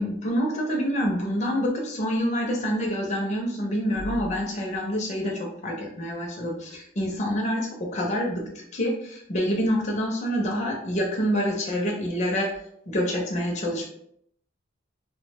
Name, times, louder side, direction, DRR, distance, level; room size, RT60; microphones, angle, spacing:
voice 1, 0.0-12.5 12.9-13.9, equal, 35° left, -1 dB, 0.5 m, -27 dB
2.7 x 2.1 x 3.3 m, 0.71 s
head